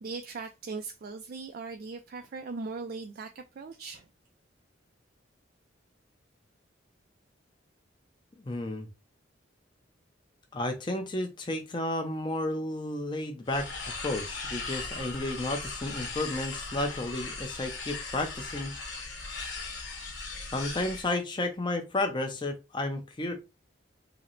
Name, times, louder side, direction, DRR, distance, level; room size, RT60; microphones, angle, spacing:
voice 1, 0.0-4.1, right 4 dB, 50° right, 0.3 m, -39 dB
voice 2, 8.4-8.9 10.5-18.7 20.5-23.3, left 2 dB, 25° left, 0.5 m, -32 dB
sound 1, 13.5-21.1, left 4 dB, 65° left, 1.5 m, -38 dB
4.8 x 2.0 x 3.1 m
head